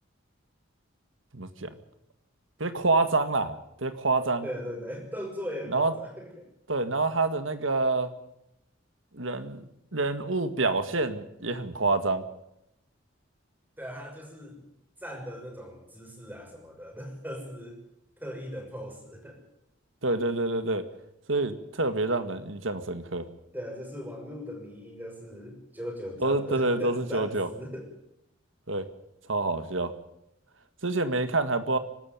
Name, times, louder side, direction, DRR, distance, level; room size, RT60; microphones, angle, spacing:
voice 1, 1.3-1.7 2.6-4.5 5.7-5.9 6.7-8.1 9.1-9.6 9.9-12.2 20.0-20.8 21.3-23.2 26.2-27.5 28.7-28.8 29.3-29.9 30.8-31.8, right 3 dB, 70° right, 10 dB, 1.9 m, -27 dB
voice 2, 4.4-6.5 13.8-14.6 15.0-17.8 18.2-19.4 23.5-27.9, equal, 10° right, 2 dB, 6.0 m, -39 dB
24.5 x 13.0 x 9.2 m, 0.82 s
head